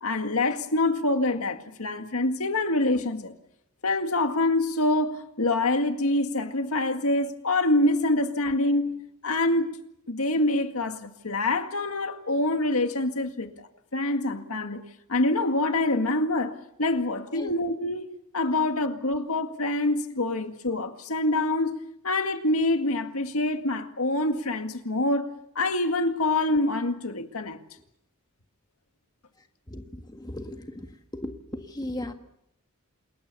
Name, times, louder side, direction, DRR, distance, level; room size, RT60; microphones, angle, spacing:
voice 1, 0.0-3.3 3.8-9.8 10.1-13.5 13.9-14.8 15.1-25.3 25.6-27.6, left 2 dB, 80° left, 2.0 m, -26 dB
voice 2, 29.7-32.1, left 1 dB, 20° left, 1.7 m, -37 dB
28.0 x 21.5 x 6.9 m
head